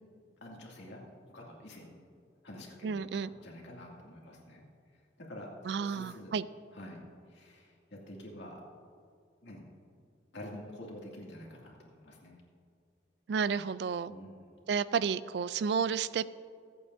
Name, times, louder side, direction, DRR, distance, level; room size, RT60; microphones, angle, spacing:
voice 1, 0.4-1.0 1.3-2.0 2.4-4.6 5.3-6.3 6.7-7.0 7.3-8.6 9.4-9.6 10.3-12.4 14.1-14.3, left 1 dB, 70° left, -2 dB, 2.4 m, -48 dB
voice 2, 2.8-3.3 5.6-6.5 13.3-14.1 14.7-16.3, right 6 dB, 65° right, 16 dB, 0.3 m, -31 dB
23.0 x 8.4 x 2.7 m, 2.3 s
head